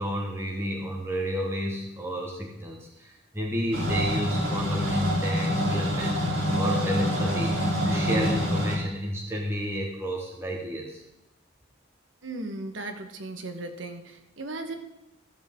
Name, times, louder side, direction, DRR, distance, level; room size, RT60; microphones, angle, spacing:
voice 1, 0.0-6.2 6.5-11.0, equal, 15° right, -2 dB, 1.3 m, -31 dB
sound 1, 3.7-8.8, equal, 90° right, 3.3 m, -26 dB
voice 2, 12.2-14.8, right 2 dB, 70° right, 6 dB, 1.3 m, -36 dB
15.5 x 7.4 x 3.6 m, 0.89 s
head